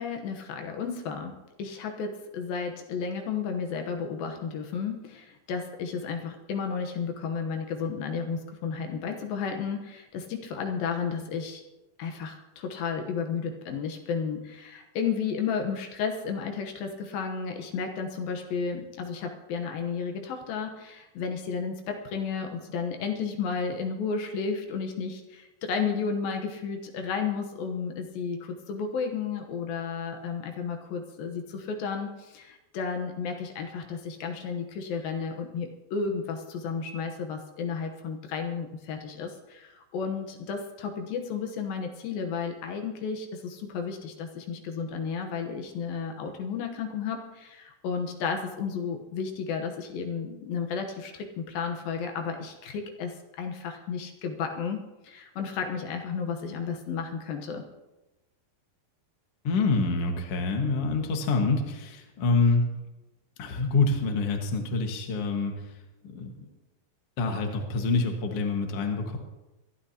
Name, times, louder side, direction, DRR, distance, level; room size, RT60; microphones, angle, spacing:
voice 1, 0.0-11.6 12.0-54.8 55.0-57.6, left 5 dB, 75° left, 4 dB, 2.8 m, -33 dB
voice 2, 59.4-62.7 63.4-65.5 66.1-66.3 67.2-69.2, left 3 dB, 50° left, 3 dB, 2.1 m, -26 dB
25.0 x 12.0 x 2.9 m, 1.0 s
omnidirectional pair, 4.2 m